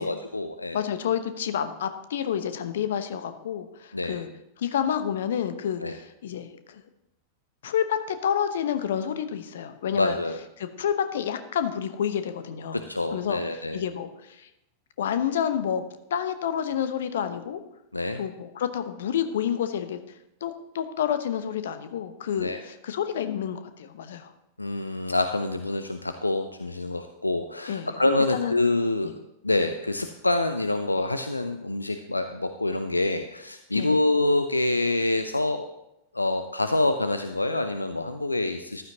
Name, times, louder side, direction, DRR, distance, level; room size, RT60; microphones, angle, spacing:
voice 1, 0.0-0.8 3.9-4.2 5.8-6.0 9.9-10.4 12.7-13.8 17.9-18.2 22.4-22.6 24.6-29.1 29.4-35.6 36.1-38.8, left 2 dB, 85° left, 8 dB, 0.6 m, -26 dB
voice 2, 0.7-4.3 4.6-6.8 7.6-10.2 10.6-12.8 13.1-13.4 13.7-14.5 15.0-15.8 16.1-17.6 18.2-20.0 20.4-24.3 27.7-28.0 28.3-28.5 29.0-29.1 33.7-33.9, left 9 dB, 60° left, 10 dB, 0.9 m, -29 dB
14.5 x 12.0 x 2.9 m, 0.86 s
figure-of-eight pair, 90°, 0 cm